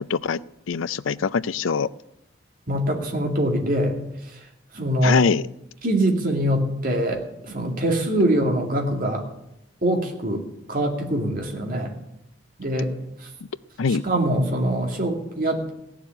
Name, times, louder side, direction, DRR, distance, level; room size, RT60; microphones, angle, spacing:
voice 1, 0.1-0.4 0.7-1.9 5.0-5.5 13.8-14.0, left 5 dB, 80° left, 17 dB, 0.5 m, -22 dB
voice 2, 2.7-4.0 4.7-5.2 5.8-9.2 9.8-10.4 10.7-11.9 12.6-12.9 14.0-15.7, right 1 dB, 45° right, 2 dB, 2.3 m, -23 dB
16.0 x 7.1 x 9.9 m, 0.84 s
head